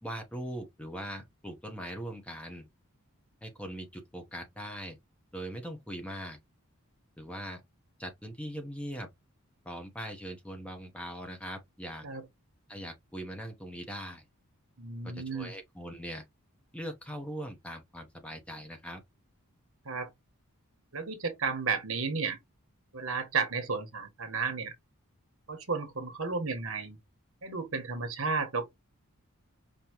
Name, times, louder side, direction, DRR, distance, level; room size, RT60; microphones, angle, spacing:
voice 1, 0.0-2.7 3.4-5.0 5.3-6.4 7.2-7.6 8.0-9.1 9.6-12.1 12.7-14.2 15.0-16.2 16.7-19.0, equal, 5° left, 0.9 m, -41 dB
voice 2, 14.8-15.5 19.8-20.1 20.9-22.4 22.9-24.7 25.5-27.0 27.4-28.6, right 4 dB, 65° right, 1.2 m, -33 dB
5.3 x 2.8 x 3.0 m
head